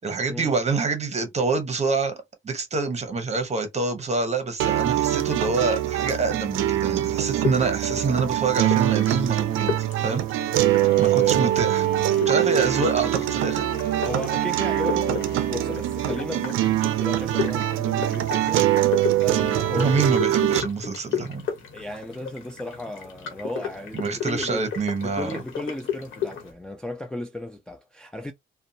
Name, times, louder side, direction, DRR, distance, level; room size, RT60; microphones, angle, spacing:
voice 1, 0.0-10.2 11.0-11.9 12.3-13.6 19.8-21.5 23.9-25.3, right 4 dB, 35° right, 0.9 m, -26 dB
sound 1, 4.6-20.6, right 13 dB, 90° right, 0.4 m, -23 dB
sound 2, 7.2-26.5, left 8 dB, 75° left, 1.1 m, -35 dB
sound 3, 10.4-16.8, left 6 dB, 55° left, 0.7 m, -40 dB
voice 2, 14.0-20.0 21.7-24.7 25.0-28.3, left 1 dB, 5° left, 0.4 m, -35 dB
2.5 x 2.2 x 2.7 m
cardioid pair, 90°, 20 cm